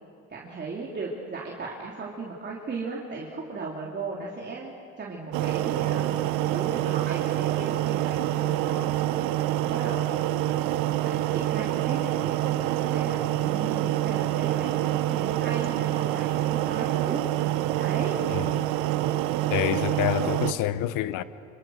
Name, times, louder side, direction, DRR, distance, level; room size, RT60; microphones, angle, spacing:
voice 1, 0.3-6.2 6.5-9.0 9.6-10.2 11.0-17.2 17.7-18.2, right 4 dB, 35° right, 3.4 m, -36 dB
sound 1, 5.3-20.5, right 14 dB, 90° right, 1.0 m, -26 dB
voice 2, 18.3-18.7 19.5-21.2, left 13 dB, 80° left, 1.0 m, -27 dB
26.5 x 26.0 x 6.5 m
cardioid pair, 95°, 32 cm